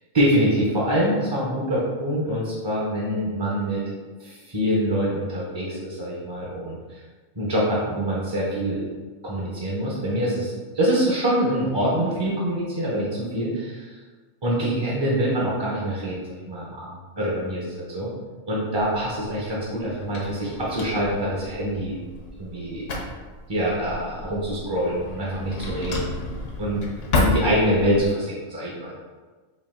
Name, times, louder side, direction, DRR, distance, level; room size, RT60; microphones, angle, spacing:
voice 1, 0.1-3.8 4.2-7.0 7.3-8.8 9.2-14.0 14.4-16.9 17.2-18.1 18.5-22.0 22.4-22.9 23.5-26.1 26.6-26.8 27.1-29.0, equal, 25° right, -6 dB, 0.6 m, -25 dB
Drawer open or close, 18.7-28.1, left 2 dB, 70° left, 1.1 m, -31 dB
4.5 x 2.7 x 3.6 m, 1.4 s
omnidirectional pair, 1.4 m